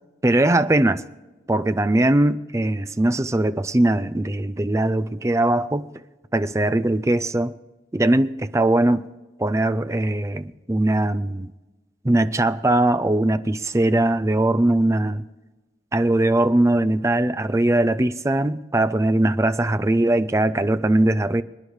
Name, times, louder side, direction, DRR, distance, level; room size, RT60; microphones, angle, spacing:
voice 1, 0.2-1.0 1.5-5.9 6.3-7.5 7.9-9.1 9.4-11.5 12.0-15.2 15.9-21.4, right 1 dB, 15° right, 0.5 m, -20 dB
25.5 x 10.0 x 3.2 m
head